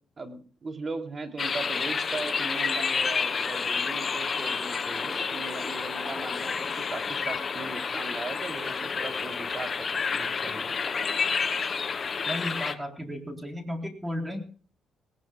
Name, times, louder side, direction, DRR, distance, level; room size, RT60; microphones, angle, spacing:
voice 1, 0.2-10.8, right 3 dB, 35° right, 6 dB, 3.2 m, -38 dB
sound 1, 1.4-12.7, left 5 dB, 40° left, 1.4 m, -30 dB
voice 2, 12.3-14.4, left 1 dB, 10° right, 5 dB, 3.8 m, -34 dB
20.0 x 18.5 x 2.3 m, 0.40 s
cardioid pair, 90°, 0 cm